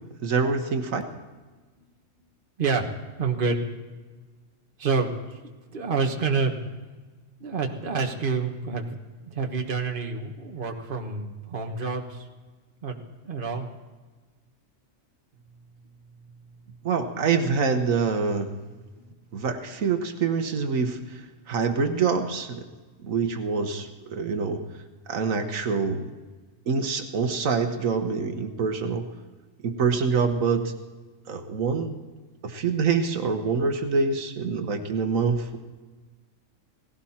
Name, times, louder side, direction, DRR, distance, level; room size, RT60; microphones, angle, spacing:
voice 1, 0.2-1.0 16.8-18.5 19.3-21.2 21.5-22.6 23.0-24.6 25.1-26.1 26.7-29.0 29.6-30.7 31.3-32.0 32.4-35.6, right 5 dB, 80° right, 6 dB, 1.5 m, -25 dB
voice 2, 2.6-2.9 3.2-3.6 4.8-5.4 5.7-6.6 7.4-9.0 9.2-12.3 12.8-13.7 19.0-19.1 33.5-33.7, right 4 dB, 40° right, 3 dB, 1.5 m, -28 dB
18.0 x 16.0 x 4.3 m, 1.3 s
omnidirectional pair, 1.4 m